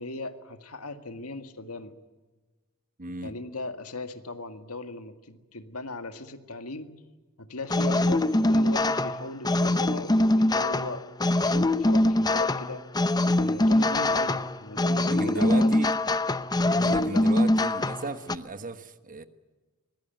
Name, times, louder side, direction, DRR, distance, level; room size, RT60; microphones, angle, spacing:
voice 1, 0.0-1.9 3.2-6.9 7.4-11.0 11.3-12.8 13.4-15.8 16.7-17.3, left 2 dB, 80° left, 8 dB, 1.9 m, -38 dB
voice 2, 3.0-3.3 15.1-15.9 16.8-19.2, right 3 dB, 40° right, 10 dB, 1.3 m, -35 dB
sound 1, 7.7-18.4, left 1 dB, 20° left, 0.7 m, -23 dB
24.5 x 20.0 x 9.2 m, 1.3 s
head